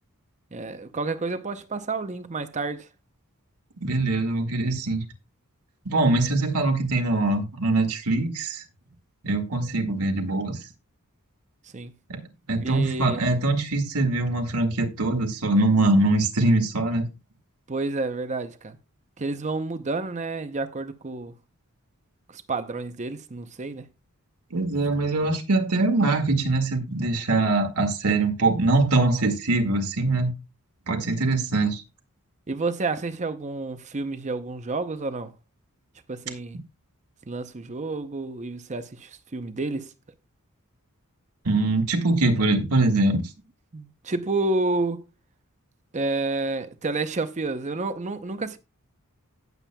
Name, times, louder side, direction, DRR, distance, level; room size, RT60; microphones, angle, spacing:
voice 1, 0.5-2.9 11.7-11.9 12.6-13.2 17.7-18.8 19.2-21.3 22.3-23.9 32.5-35.3 36.1-36.6 37.3-39.9 43.7-45.0 45.9-48.6, right 3 dB, 30° right, 0.6 m, -30 dB
voice 2, 3.8-5.0 5.9-8.6 9.2-10.6 12.1-12.2 12.5-17.0 24.5-30.3 30.9-31.8 41.4-43.3, right 2 dB, 85° right, 1.9 m, -23 dB
17.5 x 7.4 x 2.2 m
head